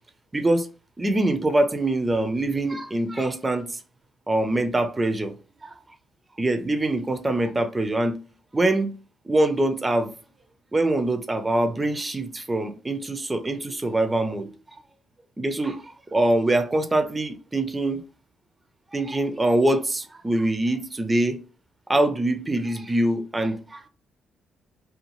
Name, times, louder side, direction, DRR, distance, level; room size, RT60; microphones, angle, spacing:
voice 1, 0.3-0.7 1.0-3.8 4.3-5.3 5.6-5.8 6.4-8.2 8.5-8.9 9.3-10.1 10.7-14.5 15.4-18.0 18.9-21.4 21.9-23.9, right 1 dB, 20° right, 0.4 m, -24 dB
2.6 x 2.3 x 2.9 m
cardioid pair, 90°, 0 cm